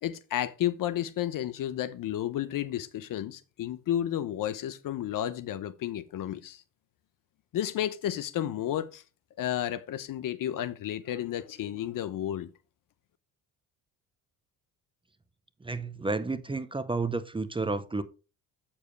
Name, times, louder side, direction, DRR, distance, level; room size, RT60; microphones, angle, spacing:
voice 1, 0.0-6.6 7.5-9.0 9.4-12.5, left 11 dB, 55° left, 0.9 m, -32 dB
voice 2, 15.6-18.0, right 3 dB, 15° right, 0.9 m, -31 dB
8.2 x 7.2 x 3.2 m
supercardioid pair, 75°, 38 cm